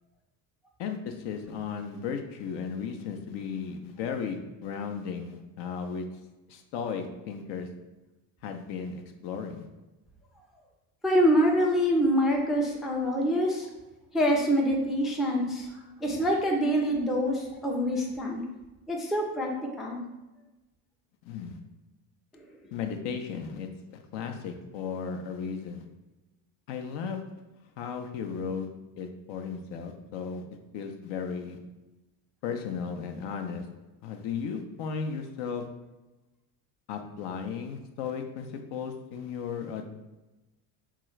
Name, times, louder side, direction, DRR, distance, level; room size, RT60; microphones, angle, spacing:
voice 1, 0.8-6.1 6.5-7.7 8.4-9.7 21.2-21.6 22.7-25.8 26.7-27.2 27.8-28.7 29.0-30.4 30.7-31.6 32.4-33.7 34.0-35.7 36.9-39.8, left 6 dB, 60° left, 5 dB, 0.6 m, -35 dB
voice 2, 11.0-13.7 14.1-15.7 16.0-18.4 18.9-20.0, equal, ahead, -1 dB, 0.4 m, -25 dB
3.7 x 2.4 x 3.0 m, 1.1 s
hypercardioid pair, 75°, 50 cm